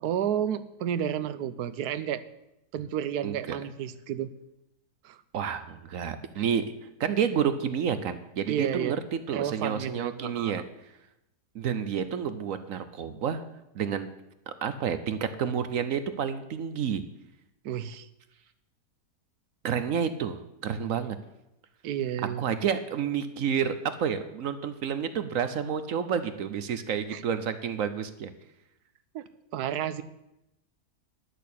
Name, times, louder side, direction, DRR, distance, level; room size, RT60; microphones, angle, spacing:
voice 1, 0.0-2.2 2.7-4.3 5.0-5.2 8.5-9.0 9.3-10.5 17.6-18.1 21.8-22.4 27.1-27.2 29.1-29.3 29.5-30.0, right 10 dB, 80° right, 14 dB, 1.2 m, -31 dB
voice 2, 3.2-3.6 5.3-6.7 7.0-10.6 11.5-13.4 13.7-14.1 14.5-17.0 19.6-21.2 22.4-28.3, right 7 dB, 65° right, 11 dB, 1.1 m, -30 dB
11.0 x 6.4 x 8.4 m, 0.89 s
omnidirectional pair, 1.6 m